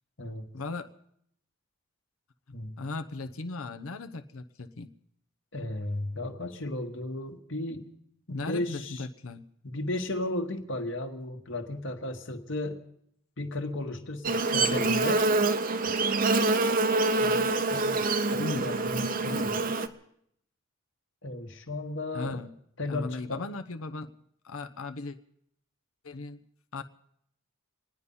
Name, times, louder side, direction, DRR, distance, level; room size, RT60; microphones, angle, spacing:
voice 1, 0.5-0.9 2.8-4.9 8.3-9.4 18.4-18.7 22.1-22.5 22.9-24.1 24.4-25.2 26.0-26.4 26.7-26.8, left 3 dB, 80° left, 6 dB, 0.8 m, -37 dB
voice 2, 5.5-7.9 8.3-9.0 9.6-12.8 13.4-15.2 17.2-18.0 18.3-19.7 21.2-22.4 22.8-23.4, left 1 dB, 60° left, 5 dB, 1.5 m, -35 dB
Buzz, 14.2-19.9, right 3 dB, 40° right, 0.7 m, -26 dB
26.5 x 9.8 x 5.5 m, 0.71 s
head